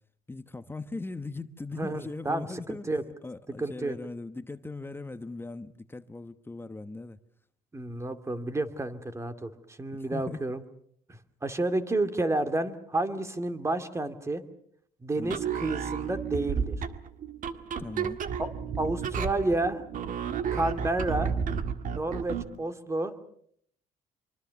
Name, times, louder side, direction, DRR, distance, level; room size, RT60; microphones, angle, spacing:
voice 1, 0.3-2.9 3.2-7.2 9.9-10.4 15.2-15.4 17.8-18.3, left 3 dB, 15° left, 1.1 m, -39 dB
voice 2, 1.7-3.0 3.6-4.0 7.7-10.6 11.1-14.4 15.0-16.8 18.8-19.8 20.5-21.3 21.9-23.1, right 2 dB, 15° right, 2.4 m, -30 dB
sound 1, 15.2-22.6, right 7 dB, 50° right, 1.8 m, -32 dB
26.0 x 24.0 x 7.1 m
cardioid pair, 110°, 17 cm